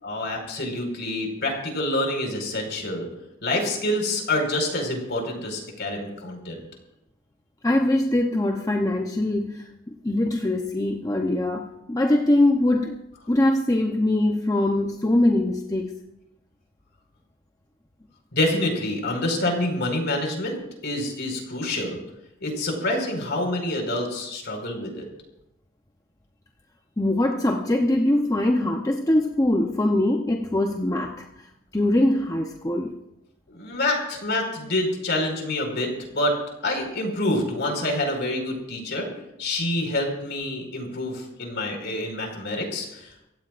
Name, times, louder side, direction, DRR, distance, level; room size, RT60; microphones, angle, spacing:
voice 1, 0.0-3.0 3.4-6.6 18.3-20.6 20.8-22.0 22.4-25.0 33.5-35.9 36.1-36.3 36.6-39.1 39.4-43.1, left 1 dB, 55° left, 2 dB, 4.9 m, -27 dB
voice 2, 7.6-13.0 13.3-16.0 27.0-31.2 31.7-32.9, left 1 dB, 15° left, 2 dB, 0.8 m, -22 dB
25.0 x 16.0 x 2.5 m, 0.87 s
head